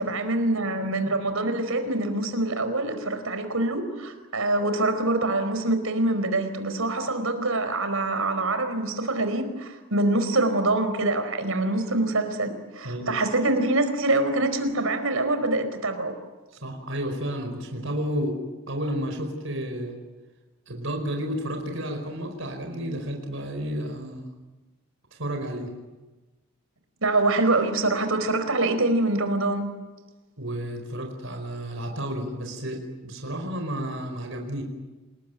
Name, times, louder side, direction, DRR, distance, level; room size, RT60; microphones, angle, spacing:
voice 1, 0.0-16.1 27.0-29.7, right 2 dB, 85° right, 9 dB, 4.7 m, -25 dB
voice 2, 16.6-20.0 20.7-24.2 25.1-25.7 30.4-34.6, equal, 70° right, 3 dB, 4.9 m, -31 dB
28.0 x 21.0 x 9.3 m, 1.2 s
head